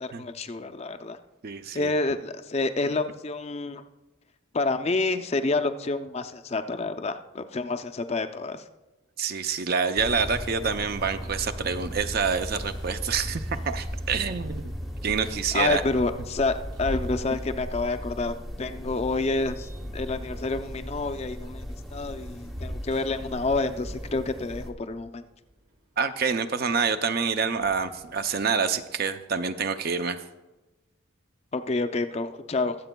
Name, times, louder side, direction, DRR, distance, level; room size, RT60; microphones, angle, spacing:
voice 1, 0.0-1.2 1.7-3.8 4.5-8.6 15.3-21.7 21.9-25.3 31.5-32.7, left 3 dB, 30° left, 8 dB, 0.4 m, -28 dB
voice 2, 1.4-1.9 9.2-14.7 15.0-15.8 26.0-30.2, right 5 dB, 45° right, 9 dB, 0.5 m, -27 dB
sound 1, 10.0-24.7, equal, ahead, 0.7 m, -37 dB
sound 2, 10.5-28.8, equal, 70° right, 4.0 m, -46 dB
22.0 x 7.8 x 2.2 m, 1.1 s
head